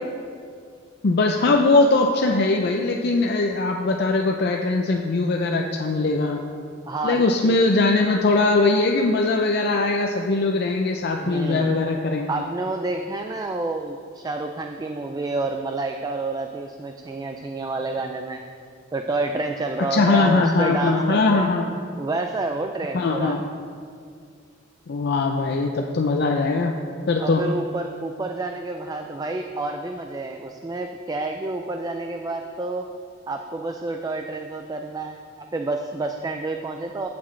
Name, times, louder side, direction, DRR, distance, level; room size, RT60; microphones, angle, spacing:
voice 1, 1.0-6.4 7.0-12.3 19.9-21.7 22.9-23.4 24.9-26.8 27.1-27.4, left 3 dB, 55° left, 2 dB, 0.5 m, -21 dB
voice 2, 6.9-7.6 11.2-11.8 12.3-18.4 18.9-21.5 22.0-23.4 27.2-32.9 33.3-35.2 35.5-37.1, right 2 dB, 20° right, 4 dB, 0.3 m, -29 dB
15.5 x 6.0 x 3.2 m, 2.3 s
head